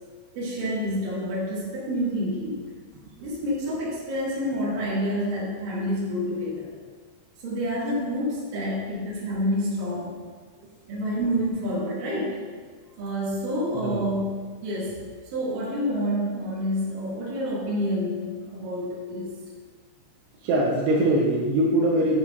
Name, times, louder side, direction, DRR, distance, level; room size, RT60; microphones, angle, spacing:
voice 1, 0.4-2.6 3.2-6.7 7.4-10.1 10.9-12.4 13.0-15.0 15.3-19.4, equal, 55° right, -7 dB, 2.9 m, -28 dB
voice 2, 13.7-14.1 20.4-22.2, right 1 dB, 80° right, -3 dB, 2.9 m, -22 dB
9.1 x 6.2 x 2.4 m, 1.5 s
omnidirectional pair, 5.6 m